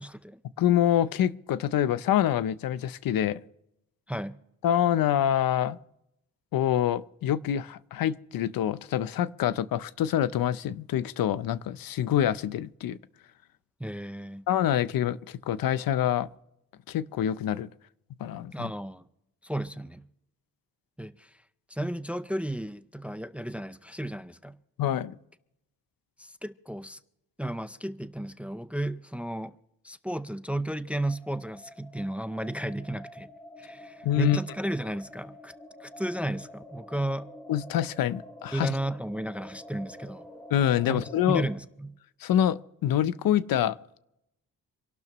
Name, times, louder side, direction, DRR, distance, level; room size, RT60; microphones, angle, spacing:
voice 1, 0.0-0.4 4.1-4.4 13.8-14.5 18.5-19.0 19.4-20.1 21.0-21.3 21.7-24.6 26.2-27.0 27.4-29.6 29.8-33.3 33.6-35.5 35.8-37.3 38.5-40.3 40.9-41.0 41.3-42.0, right 1 dB, 5° right, 0.4 m, -33 dB
voice 2, 0.6-3.4 4.6-5.8 6.5-13.0 14.5-16.3 16.9-17.7 18.2-18.7 24.8-25.1 34.0-34.4 37.5-38.7 40.5-41.4 42.2-43.8, left 10 dB, 75° left, 0.6 m, -26 dB
sound 1, 31.0-41.6, left 1 dB, 10° left, 1.9 m, -47 dB
27.0 x 12.0 x 3.0 m
cardioid pair, 130°, 35 cm